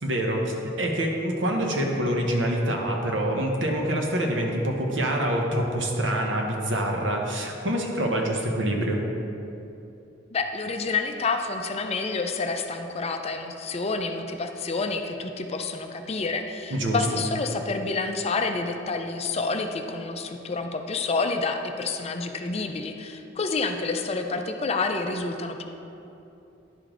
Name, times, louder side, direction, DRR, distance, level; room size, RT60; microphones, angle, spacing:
voice 1, 0.0-9.1 16.7-17.2, right 1 dB, 75° right, 1 dB, 1.0 m, -26 dB
voice 2, 10.3-25.6, left 3 dB, 35° left, 5 dB, 0.4 m, -28 dB
10.5 x 5.0 x 3.7 m, 2.9 s
head